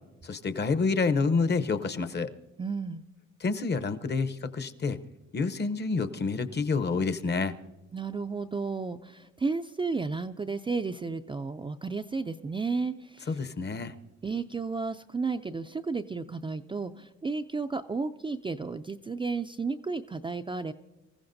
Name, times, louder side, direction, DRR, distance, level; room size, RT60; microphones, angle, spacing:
voice 1, 0.2-2.3 3.4-5.0 5.3-7.5 13.3-13.9, left 4 dB, 35° left, 12 dB, 0.8 m, -28 dB
voice 2, 2.6-3.0 7.9-13.4 14.2-20.7, right 4 dB, 15° right, 6 dB, 0.4 m, -33 dB
25.5 x 14.5 x 2.6 m, 1.0 s
cardioid pair, 90°, 30 cm